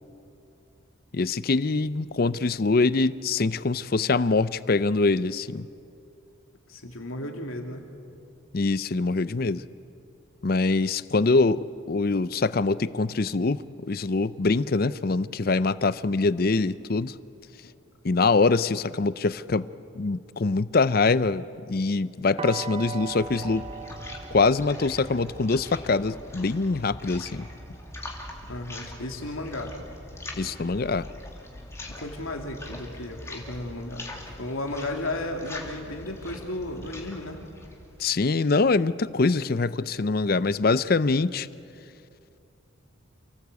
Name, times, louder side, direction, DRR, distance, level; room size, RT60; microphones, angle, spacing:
voice 1, 1.1-5.7 8.5-9.6 10.4-17.2 18.0-19.7 20.0-23.6 24.3-27.5 30.4-31.0 38.0-41.5, left 3 dB, 45° left, 16 dB, 0.5 m, -24 dB
voice 2, 6.7-7.8 28.5-29.7 31.8-34.1 34.4-37.4, left 1 dB, 90° left, 3 dB, 2.8 m, -34 dB
sound 1, 22.4-28.2, right 6 dB, 25° right, 0.7 m, -41 dB
sound 2, 23.0-38.7, left 1 dB, 15° left, 2.4 m, -42 dB
29.0 x 17.5 x 8.2 m, 2.6 s
head